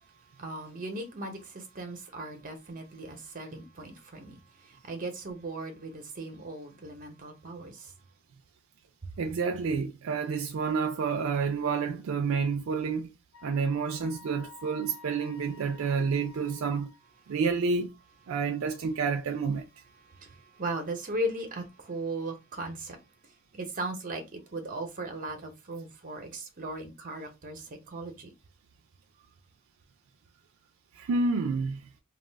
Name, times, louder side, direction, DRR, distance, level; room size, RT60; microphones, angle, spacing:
voice 1, 0.4-4.3 4.7-7.9 20.2-23.0 23.5-28.3, right 1 dB, 40° right, 0.7 m, -37 dB
voice 2, 9.2-13.1 13.4-16.9 17.3-18.0 18.3-19.7 31.0-31.8, right 5 dB, 75° right, 0.4 m, -29 dB
Wind instrument woodwind instrument, 13.3-17.2, left 4 dB, 75° left, 0.5 m, -52 dB
2.4 x 2.3 x 3.3 m
head